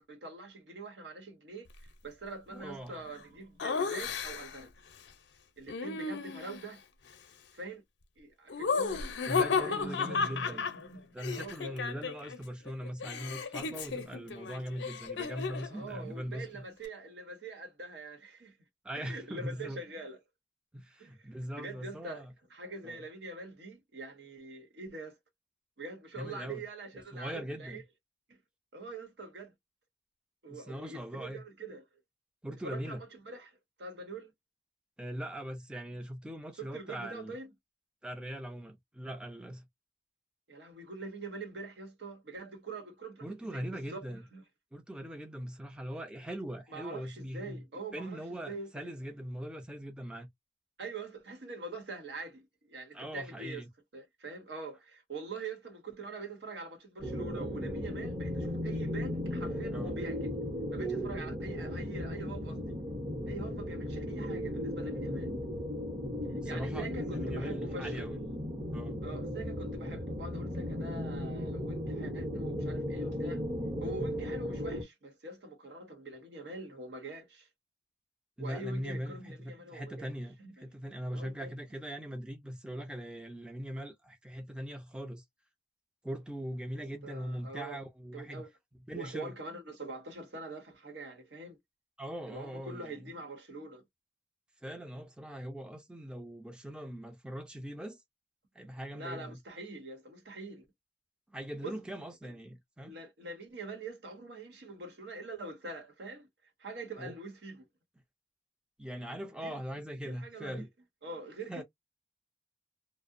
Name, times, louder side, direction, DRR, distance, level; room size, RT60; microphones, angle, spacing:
voice 1, 0.0-1.7 2.0-4.7 5.6-6.8 7.5-7.8 8.2-9.2 9.4-11.8 15.6-18.6 18.9-20.2 21.0-25.2 25.8-27.8 28.3-28.4 28.7-29.5 30.4-31.9 32.5-34.3 36.6-37.5 40.5-44.4 46.7-48.8 50.8-53.6 53.9-60.3 60.7-62.6 63.3-65.3 66.4-68.0 69.0-73.4 73.8-77.5 78.4-80.1 80.4-80.7 81.1-81.5 87.0-87.8 88.1-88.5 88.9-91.6 92.3-93.8 98.9-100.7 101.6-101.8 102.2-102.4 102.8-106.3 106.6-107.7 109.4-109.6 110.0-110.7 111.0-111.6, right 3 dB, 75° right, 0.9 m, -44 dB
voice 2, 2.5-3.0 9.3-10.6 11.1-16.6 18.8-19.8 20.7-22.3 22.9-23.0 26.2-26.6 27.1-27.8 30.5-31.4 32.4-33.0 35.0-37.3 38.0-39.6 43.2-44.2 44.7-47.6 47.9-50.3 52.9-53.7 59.7-59.9 66.4-68.2 68.7-69.0 78.4-85.2 86.0-88.4 88.9-89.3 92.0-93.0 94.6-98.0 98.5-99.4 101.3-103.0 107.0-107.1 108.8-110.7 111.5-111.6, equal, 5° right, 0.4 m, -41 dB
Laughter, 3.6-4.6 5.7-6.7 8.5-12.4 12.7-15.8, left 5 dB, 80° left, 0.6 m, -34 dB
sound 1, 57.0-74.8, equal, 35° right, 0.8 m, -36 dB
2.7 x 2.0 x 2.5 m
head